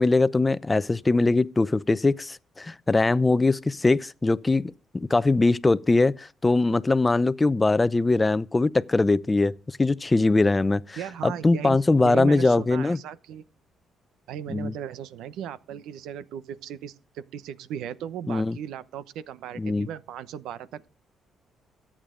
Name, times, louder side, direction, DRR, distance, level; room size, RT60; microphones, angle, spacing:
voice 1, 0.0-13.0 14.5-14.7 18.3-18.6 19.6-19.9, left 3 dB, 20° left, 0.6 m, -22 dB
voice 2, 11.0-13.4 14.3-20.9, right 9 dB, 85° right, 0.9 m, -37 dB
23.0 x 8.8 x 3.8 m
cardioid pair, 90°, 0 cm